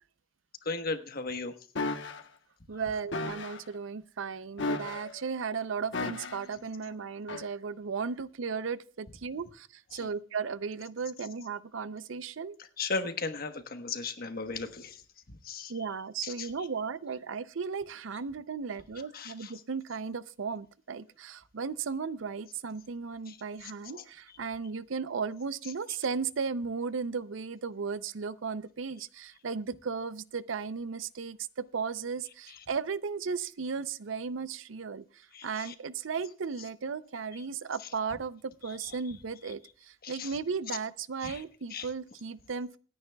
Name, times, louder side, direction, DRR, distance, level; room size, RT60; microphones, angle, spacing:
voice 1, 0.6-1.5 9.9-10.1 12.8-15.0 15.4-15.7 16.2-16.7 19.1-19.5 23.3-23.4 23.9-24.0 35.3-35.7 40.0-40.3 41.2-41.4 41.7-41.9, left 4 dB, 50° left, 1.2 m, -36 dB
sound 1, 1.8-2.2 3.1-3.6 4.6-5.2 5.9-6.5 7.3-7.5, left 3 dB, 65° left, 1.0 m, -34 dB
voice 2, 2.7-12.6 15.7-35.0 35.4-42.8, right 5 dB, 70° right, 0.5 m, -35 dB
27.0 x 9.7 x 2.3 m
head